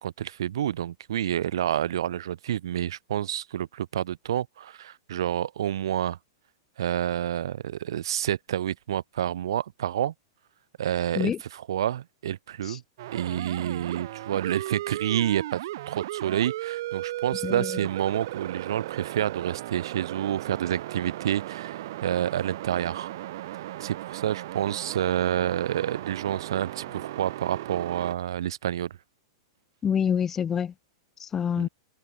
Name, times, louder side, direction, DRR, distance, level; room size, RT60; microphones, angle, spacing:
voice 1, 0.0-6.2 6.8-10.1 10.8-12.8 13.1-15.6 15.9-23.1 23.5-29.0 31.6-31.7, right 11 dB, 65° right, 2.5 m, -29 dB
sound 1, 13.0-28.1, right 15 dB, 45° right, 6.0 m, -36 dB
voice 2, 29.8-30.7 31.2-31.7, left 8 dB, 10° left, 0.3 m, -26 dB
supercardioid pair, 180°, 3 cm